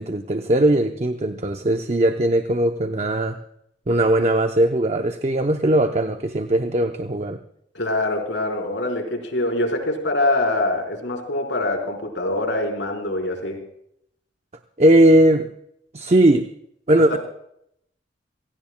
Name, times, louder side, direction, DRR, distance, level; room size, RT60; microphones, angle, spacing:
voice 1, 0.0-3.4 3.9-7.4 14.8-15.5 15.9-16.5 16.9-17.2, right 1 dB, 35° right, 6 dB, 0.7 m, -19 dB
voice 2, 7.7-13.6 17.1-17.2, left 2 dB, 85° left, 2 dB, 4.2 m, -24 dB
28.0 x 17.5 x 2.2 m, 0.73 s
head